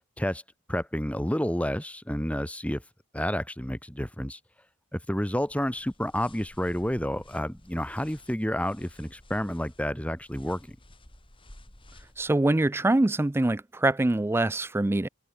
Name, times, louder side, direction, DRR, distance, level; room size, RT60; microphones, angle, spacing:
voice 1, 0.7-2.8 3.1-4.4 4.9-10.8, equal, 5° left, 2.0 m, -30 dB
sound 1, 5.3-12.3, left 1 dB, 25° left, 3.7 m, -53 dB
voice 2, 12.2-15.1, right 2 dB, 10° right, 0.4 m, -24 dB
head